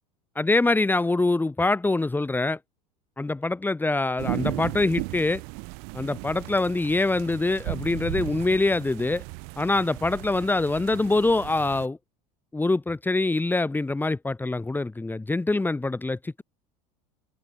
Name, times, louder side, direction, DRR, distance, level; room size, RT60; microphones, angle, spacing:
voice 1, 0.3-2.6 3.2-5.4 5.9-9.2 9.6-12.0 12.5-16.4, left 2 dB, 10° left, 4.9 m, -24 dB
sound 1, 4.2-11.9, right 40 dB or more, 70° right, 6.9 m, -36 dB
supercardioid pair, 100°, 17 cm